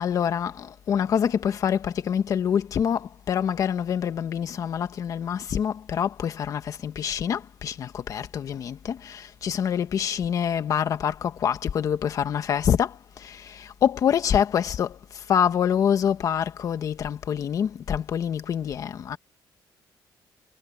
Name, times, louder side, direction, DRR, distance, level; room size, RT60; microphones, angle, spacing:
voice 1, 0.0-19.2, left 8 dB, 45° left, 1.6 m, -26 dB
cardioid pair, 175°, 8 cm